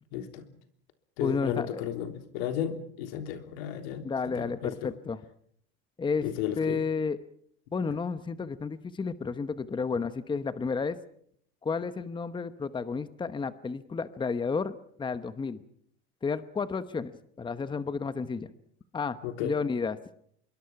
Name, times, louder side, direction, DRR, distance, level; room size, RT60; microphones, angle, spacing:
voice 1, 0.1-0.5 1.2-4.9 6.2-6.8 19.2-19.5, left 10 dB, 80° left, 7 dB, 3.5 m, -34 dB
voice 2, 1.2-1.8 4.0-5.2 6.0-6.3 6.6-7.2 7.7-11.0 11.6-15.6 16.2-18.5 18.9-20.0, left 5 dB, 15° left, 13 dB, 1.0 m, -32 dB
26.0 x 22.5 x 5.9 m, 0.65 s
supercardioid pair, 120°, 31 cm